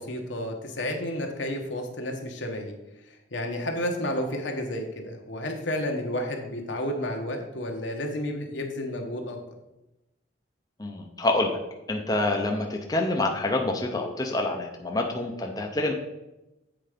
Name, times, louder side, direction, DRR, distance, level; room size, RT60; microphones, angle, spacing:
voice 1, 0.0-2.7 3.1-9.4, left 1 dB, 75° left, 2 dB, 1.3 m, -31 dB
voice 2, 10.8-11.6 11.9-15.9, left 2 dB, 20° left, 1 dB, 0.7 m, -27 dB
7.8 x 4.7 x 5.1 m, 0.97 s
head